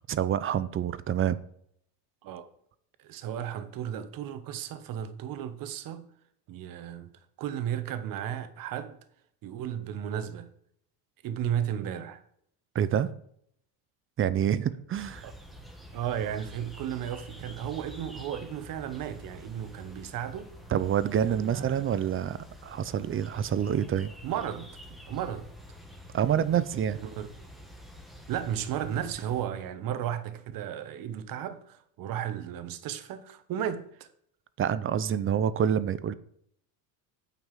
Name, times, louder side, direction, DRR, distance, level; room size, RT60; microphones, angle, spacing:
voice 1, 0.1-1.4 12.7-13.1 14.2-15.3 20.7-24.1 26.1-27.0 34.6-36.1, right 9 dB, 30° right, 0.6 m, -27 dB
voice 2, 3.0-6.1 6.5-7.1 7.4-8.9 9.4-10.5 11.2-12.2 15.2-15.3 15.9-20.5 21.3-21.9 24.2-25.5 27.0-27.3 28.3-34.1, right 10 dB, 50° right, 1.2 m, -34 dB
sound 1, 15.0-29.4, equal, ahead, 1.6 m, -48 dB
9.1 x 5.9 x 7.4 m
cardioid pair, 120°, 43 cm